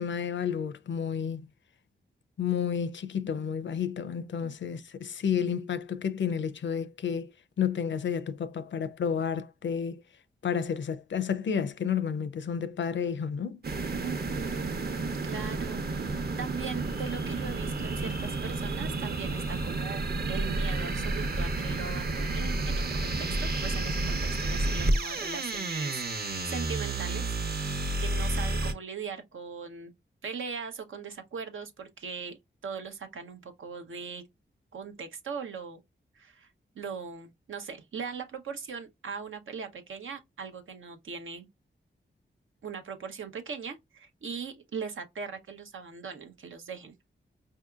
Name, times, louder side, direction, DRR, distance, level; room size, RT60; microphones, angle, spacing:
voice 1, 0.0-1.5 2.4-7.3 7.6-10.0 10.4-13.6, left 7 dB, 70° left, 0.5 m, -31 dB
sound 1, 13.6-28.7, right 2 dB, 50° right, 0.8 m, -31 dB
voice 2, 14.0-27.3 28.0-29.9 30.2-32.4 32.6-34.2 34.7-35.8 36.1-41.5 42.6-46.9, right 6 dB, 90° right, 0.8 m, -40 dB
4.6 x 2.7 x 2.4 m
cardioid pair, 60°, 20 cm